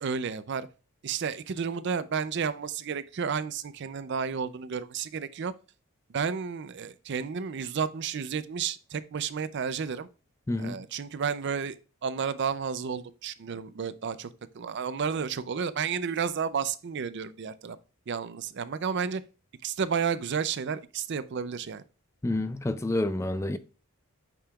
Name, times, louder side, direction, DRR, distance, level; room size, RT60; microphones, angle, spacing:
voice 1, 0.0-0.7 1.0-5.5 6.1-10.1 10.6-14.3 14.5-17.8 18.1-19.2 19.6-21.8, right 6 dB, 55° right, 0.4 m, -31 dB
voice 2, 10.5-10.8 22.2-23.6, left 1 dB, 15° left, 0.3 m, -28 dB
8.5 x 5.1 x 2.3 m
head